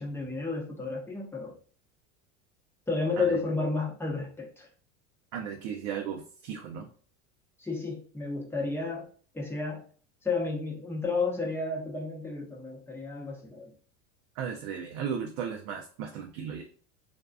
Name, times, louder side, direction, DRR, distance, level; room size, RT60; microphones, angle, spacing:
voice 1, 0.0-1.5 2.9-4.7 7.6-9.1 9.3-9.8 10.2-13.7, left 3 dB, 5° left, -2 dB, 0.8 m, -32 dB
voice 2, 5.3-6.9 14.4-16.6, right 7 dB, 60° right, 1 dB, 0.6 m, -35 dB
2.6 x 2.2 x 2.3 m, 0.43 s
supercardioid pair, 110°, 36 cm